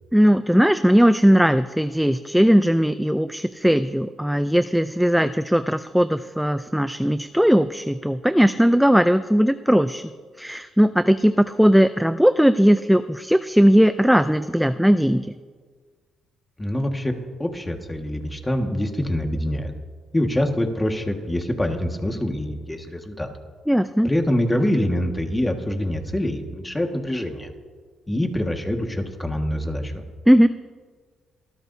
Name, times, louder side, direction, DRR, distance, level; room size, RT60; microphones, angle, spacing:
voice 1, 0.1-10.1 10.4-15.3 23.7-24.1 30.3-30.5, equal, ahead, 11 dB, 0.4 m, -18 dB
voice 2, 16.6-19.7 20.1-23.3 24.0-27.5 28.1-30.0, left 1 dB, 15° left, 4 dB, 1.7 m, -25 dB
24.5 x 13.5 x 2.8 m, 1.5 s
cardioid pair, 90°, 0 cm